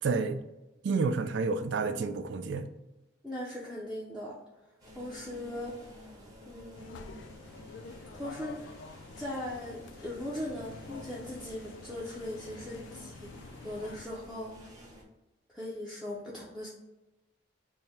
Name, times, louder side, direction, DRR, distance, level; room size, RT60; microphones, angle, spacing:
voice 1, 0.0-0.4 0.8-2.7, right 4 dB, 70° right, 9 dB, 0.4 m, -29 dB
voice 2, 3.2-6.1 6.4-7.2 8.1-8.6 9.2-13.3 13.6-14.7 15.5-16.7, left 1 dB, 5° right, -7 dB, 0.5 m, -40 dB
sound 1, 4.8-15.0, equal, 20° right, 0.9 m, -51 dB
sound 2, 6.7-14.0, left 4 dB, 75° left, 0.3 m, -49 dB
3.5 x 2.1 x 4.1 m, 1.0 s
head